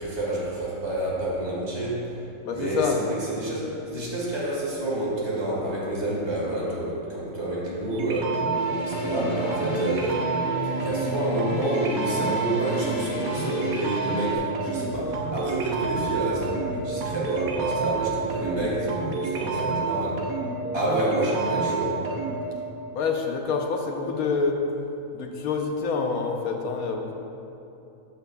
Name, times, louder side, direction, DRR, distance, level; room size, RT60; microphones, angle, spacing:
voice 1, 0.0-2.1 2.5-8.5 8.8-10.3 10.8-20.2 20.7-22.1, right 1 dB, 50° right, -5 dB, 1.9 m, -28 dB
voice 2, 2.4-3.0 22.9-24.6 25.1-27.1, left 5 dB, 90° left, 3 dB, 1.2 m, -27 dB
sound 1, 7.9-22.4, right 4 dB, 90° right, 1.2 m, -29 dB
sound 2, 8.5-14.4, equal, 40° left, 0.8 m, -34 dB
13.5 x 5.7 x 2.3 m, 2.9 s
omnidirectional pair, 1.5 m